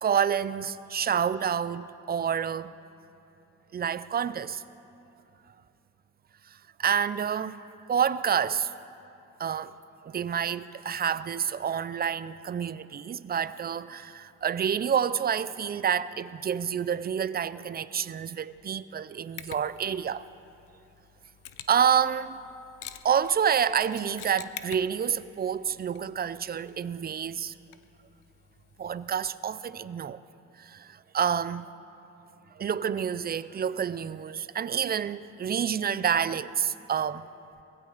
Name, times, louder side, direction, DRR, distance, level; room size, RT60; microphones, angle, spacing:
voice 1, 0.0-2.7 3.7-4.6 6.8-7.6 7.9-8.8 9.4-9.7 10.0-20.3 21.7-22.4 23.0-27.5 28.8-30.2 30.6-31.7 32.6-37.3, right 8 dB, 30° right, 0.5 m, -28 dB
Mechanisms, 19.4-29.2, left 12 dB, 85° left, 0.6 m, -49 dB
21.5 x 15.5 x 4.1 m
cardioid pair, 90°, 30 cm